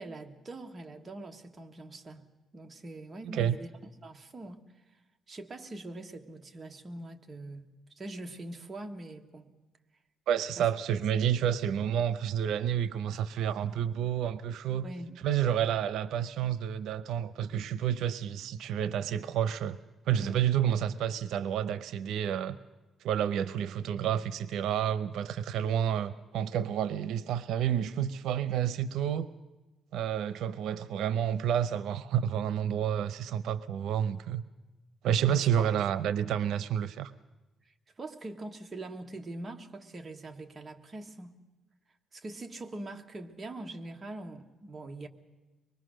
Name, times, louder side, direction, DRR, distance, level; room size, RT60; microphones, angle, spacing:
voice 1, 0.0-2.2 2.5-4.6 5.3-7.7 8.0-9.5 10.6-10.7 14.8-15.1 20.2-20.4 35.3-35.7 38.0-41.3 42.1-45.1, right 2 dB, 20° right, 3 dB, 1.3 m, -43 dB
voice 2, 10.3-14.9 15.2-19.8 20.1-22.6 23.0-29.3 29.9-34.4 35.0-37.1, right 9 dB, 85° right, 14 dB, 0.7 m, -29 dB
24.0 x 21.5 x 6.4 m, 1.1 s
cardioid pair, 160°, 0 cm